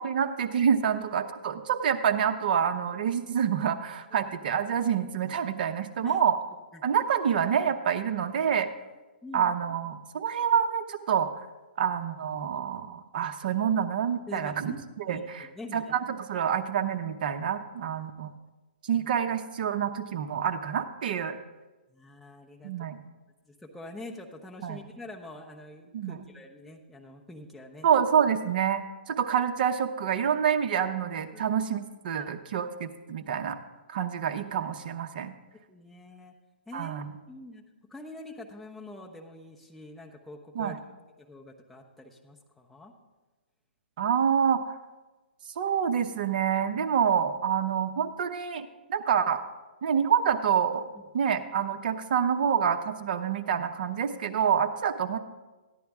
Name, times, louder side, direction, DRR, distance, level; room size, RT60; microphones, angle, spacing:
voice 1, 0.0-6.4 6.8-8.7 9.3-11.3 11.8-15.5 15.7-18.3 18.9-21.4 22.6-23.0 24.6-24.8 25.9-26.2 27.8-33.6 33.9-35.3 36.7-37.1 40.5-40.8 44.0-44.8 45.6-49.4 49.8-50.9 51.1-55.2, right 8 dB, 50° right, 7 dB, 0.8 m, -27 dB
voice 2, 9.2-9.5 14.3-16.0 18.9-19.1 21.9-22.9 23.5-27.9 31.3-31.4 32.1-32.3 33.2-33.3 35.7-36.3 36.7-37.6 37.9-40.8 41.2-42.9 50.9-51.0, left 2 dB, ahead, -2 dB, 0.9 m, -45 dB
14.0 x 10.0 x 3.6 m, 1.2 s
hypercardioid pair, 145°, 6 cm